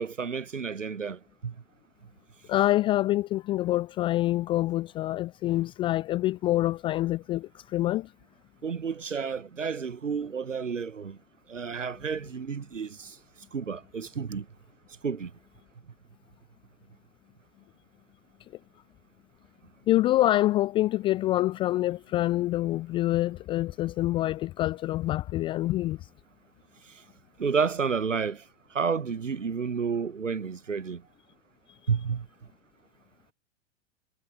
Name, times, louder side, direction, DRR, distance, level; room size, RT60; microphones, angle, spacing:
voice 1, 0.0-1.5 8.6-11.2 11.5-13.2 13.5-14.5 15.0-15.3 27.4-28.4 28.7-31.0 31.9-32.3, right 6 dB, 90° right, 0.7 m, -30 dB
voice 2, 2.5-8.1 19.9-26.0, left 15 dB, 15° left, 0.4 m, -26 dB
figure-of-eight pair, 95°, 36 cm